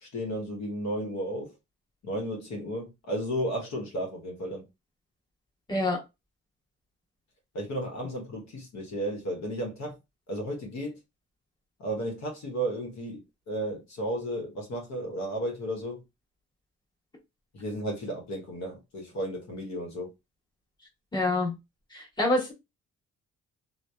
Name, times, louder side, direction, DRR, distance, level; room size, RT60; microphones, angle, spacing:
voice 1, 0.0-1.5 2.0-4.6 7.5-10.0 10.3-11.0 11.8-13.2 13.5-16.0 17.5-20.1, right 1 dB, 70° left, 1.0 m, -33 dB
voice 2, 21.1-21.5 21.9-22.5, left 2 dB, 15° left, 1.3 m, -26 dB
2.6 x 2.1 x 2.2 m
cardioid pair, 75°, 29 cm